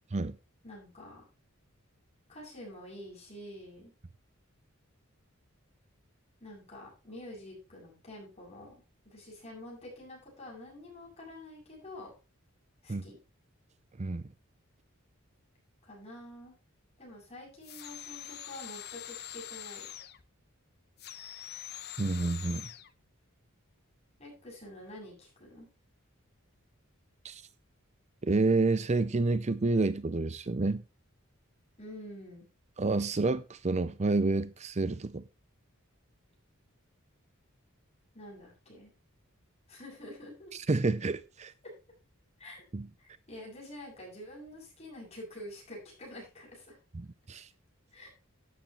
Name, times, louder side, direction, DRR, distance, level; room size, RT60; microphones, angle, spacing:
voice 1, 0.6-1.3 2.3-3.9 6.4-8.7 9.0-12.1 12.8-13.2 15.8-16.5 17.0-20.0 24.2-25.7 31.8-32.5 38.1-38.9 39.7-40.5 42.4-42.6 43.0-46.8 47.9-48.1, left 1 dB, 30° left, 7.9 m, -47 dB
sound 1, 17.6-20.2 21.0-22.9, left 11 dB, 50° left, 0.9 m, -44 dB
voice 2, 22.0-22.7 27.2-27.4 28.2-30.8 32.8-35.2 40.5-41.5 42.7-42.9 46.9-47.5, right 3 dB, 30° right, 0.6 m, -29 dB
13.0 x 9.5 x 3.1 m
head